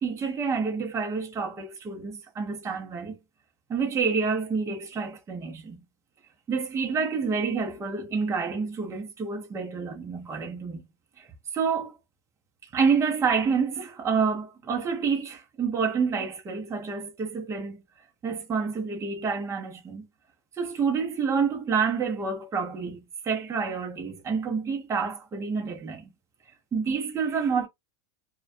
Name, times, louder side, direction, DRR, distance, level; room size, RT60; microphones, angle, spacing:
voice 1, 0.0-3.2 3.7-5.8 6.5-10.8 11.2-11.3 11.5-12.0 12.6-17.8 18.2-20.1 20.6-26.1 26.7-27.7, right 5 dB, 20° right, 0.7 m, -28 dB
2.3 x 2.1 x 2.5 m
supercardioid pair, 135°, 16 cm